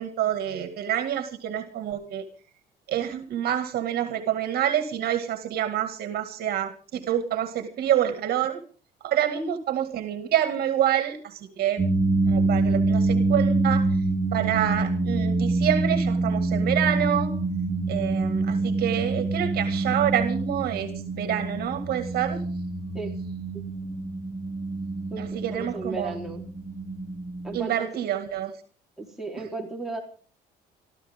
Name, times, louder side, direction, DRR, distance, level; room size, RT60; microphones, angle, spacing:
voice 1, 0.0-2.2 2.9-8.6 9.0-11.8 12.3-13.9 14.3-17.3 17.9-22.4 25.2-26.1 27.5-28.5, right 10 dB, 65° right, 8 dB, 2.0 m, -27 dB
sound 1, 11.8-27.6, right 2 dB, 20° right, 3.6 m, -26 dB
voice 2, 25.5-26.4 27.4-27.9 29.0-30.0, right 3 dB, ahead, -2 dB, 4.0 m, -35 dB
25.0 x 14.0 x 3.6 m, 0.41 s
cardioid pair, 110°, 17 cm